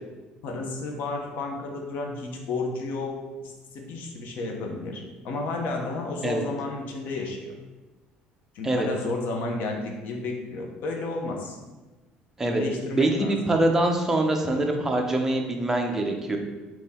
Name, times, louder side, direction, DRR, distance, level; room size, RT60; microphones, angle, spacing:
voice 1, 0.4-7.5 8.5-11.6 12.4-13.4, left 3 dB, 65° left, 1 dB, 0.9 m, -32 dB
voice 2, 12.9-16.4, right 2 dB, 15° right, 2 dB, 0.5 m, -24 dB
3.6 x 3.0 x 4.2 m, 1.2 s
cardioid pair, 135°, 3 cm